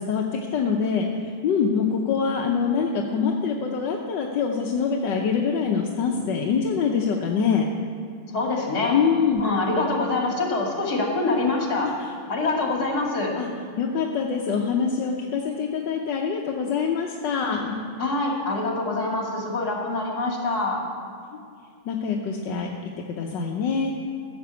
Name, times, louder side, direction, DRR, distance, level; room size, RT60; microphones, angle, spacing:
voice 1, 0.0-7.7 8.9-9.4 11.8-12.1 13.3-13.5 13.8-17.8 21.8-23.9, left 6 dB, 65° left, -1 dB, 1.4 m, -25 dB
voice 2, 8.3-9.0 9.4-12.0 12.3-13.4 17.5-17.6 18.0-20.8, left 2 dB, 45° left, -1 dB, 2.8 m, -25 dB
14.5 x 6.9 x 8.3 m, 2.3 s
omnidirectional pair, 2.4 m